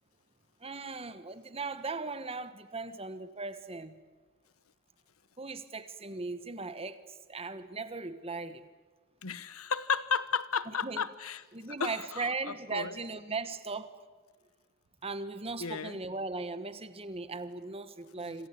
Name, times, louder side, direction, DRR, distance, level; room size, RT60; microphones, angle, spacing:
voice 1, 0.6-3.9 5.4-7.0 7.3-8.7 10.7-11.0 11.5-13.9 15.0-18.5, right 3 dB, 25° right, 12 dB, 1.3 m, -38 dB
voice 2, 9.2-11.4 11.8-12.3 12.7-12.9 15.6-16.0 18.2-18.3, left 6 dB, 75° left, 15 dB, 1.1 m, -33 dB
27.0 x 26.0 x 8.3 m, 1.3 s
head